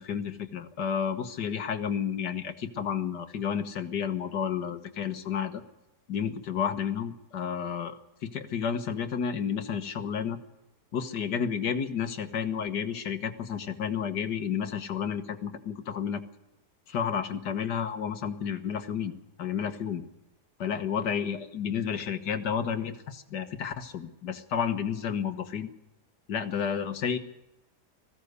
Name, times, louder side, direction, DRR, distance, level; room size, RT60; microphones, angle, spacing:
voice 1, 0.0-5.6 6.1-10.4 10.9-16.2 16.9-19.1 19.4-20.0 20.6-25.7 26.3-27.2, left 7 dB, 80° left, 8 dB, 1.9 m, -31 dB
20.5 x 16.0 x 8.1 m, 0.95 s
omnidirectional pair, 1.8 m